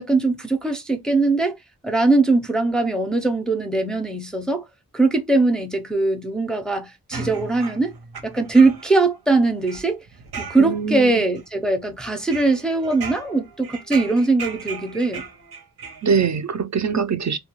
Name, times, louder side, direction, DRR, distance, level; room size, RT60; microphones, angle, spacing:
voice 1, 0.0-1.6 1.8-4.6 4.9-7.9 8.2-10.0 10.4-15.2, right 3 dB, ahead, 0.5 m, -21 dB
sound 1, 7.1-9.0 9.4-11.0 11.4-11.9 12.3-16.4, right 5 dB, 85° right, 0.9 m, -36 dB
voice 2, 10.6-11.2 16.0-17.4, right 6 dB, 50° right, 0.5 m, -22 dB
2.2 x 2.2 x 3.0 m
wide cardioid pair, 85°, 37 cm